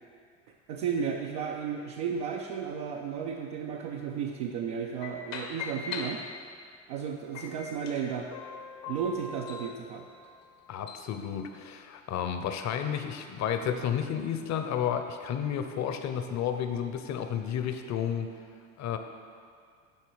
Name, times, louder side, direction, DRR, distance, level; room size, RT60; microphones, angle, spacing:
voice 1, 0.7-6.2 6.9-8.3 8.9-10.1, right 7 dB, 75° right, 0 dB, 0.7 m, -33 dB
sound 1, 5.0-6.7 7.3-11.1, left 5 dB, 70° left, 1.2 m, -41 dB
voice 2, 10.7-18.3 18.8-19.0, left 8 dB, 45° left, 7 dB, 0.8 m, -31 dB
11.0 x 4.6 x 4.7 m, 2.2 s
hypercardioid pair, 75°, 39 cm